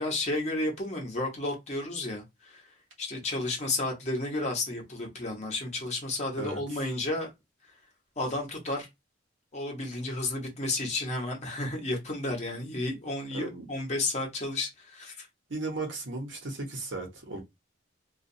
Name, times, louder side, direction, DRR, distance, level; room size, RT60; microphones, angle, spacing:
voice 1, 0.0-2.6 3.0-7.3 8.2-8.9 9.5-15.3, left 2 dB, 35° left, 0.8 m, -32 dB
voice 2, 13.3-13.7 15.5-17.4, right 2 dB, 70° right, 1.0 m, -36 dB
2.4 x 2.2 x 2.6 m
head